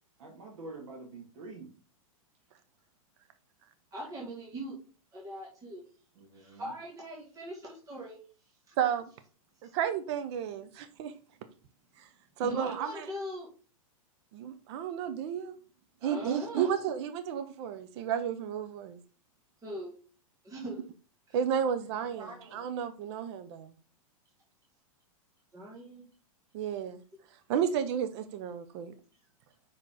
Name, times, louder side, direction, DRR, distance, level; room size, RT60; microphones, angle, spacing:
voice 1, 0.2-1.7 6.2-6.7 22.2-22.6, right 3 dB, 65° right, 2.5 m, -46 dB
voice 2, 3.9-4.8 5.1-5.8 6.3-8.2 9.6-9.7 12.4-13.5 16.0-16.7 19.6-19.9 20.4-20.8 21.3-21.4 25.5-26.1, right 1 dB, 20° right, 2.0 m, -41 dB
voice 3, 8.8-9.1 9.7-11.1 12.0-12.1 12.4-13.1 14.3-15.6 16.0-19.0 21.3-23.7 26.5-27.0 27.5-29.0, right 8 dB, 50° right, 0.8 m, -32 dB
5.7 x 4.9 x 3.8 m
hypercardioid pair, 130°, 18 cm